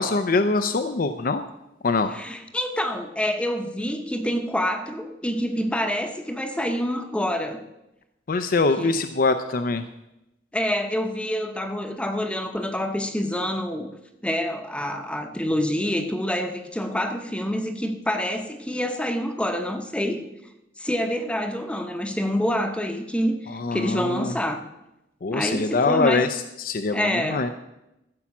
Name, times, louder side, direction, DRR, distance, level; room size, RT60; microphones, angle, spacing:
voice 1, 0.0-1.4 1.8-2.1 8.3-9.8 23.5-24.3 25.2-26.3 26.6-27.5, left 3 dB, 55° left, 9 dB, 0.5 m, -23 dB
voice 2, 2.1-7.6 8.8-9.0 10.5-13.9 14.2-20.3 20.8-24.6 25.3-26.3 26.9-27.5, equal, 5° left, 5 dB, 0.9 m, -27 dB
14.5 x 7.2 x 6.0 m, 0.90 s
head